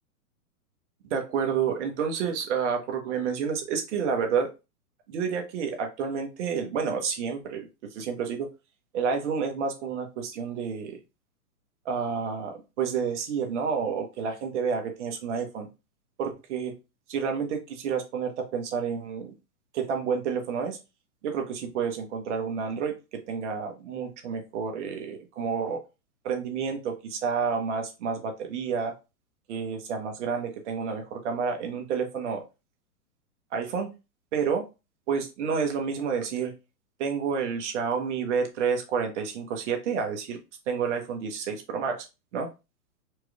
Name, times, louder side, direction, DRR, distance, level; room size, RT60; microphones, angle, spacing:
voice 1, 1.0-4.5 5.1-8.5 8.9-11.0 11.8-15.7 16.2-16.7 17.1-19.3 19.7-20.8 21.2-25.8 26.2-28.9 29.5-32.4 33.5-33.9 34.3-34.7 35.1-36.5 37.0-40.4 40.7-42.0 42.3-42.5, right 6 dB, 50° right, 4 dB, 1.2 m, -29 dB
4.6 x 3.0 x 2.3 m, 0.27 s
hypercardioid pair, 130°, 45 cm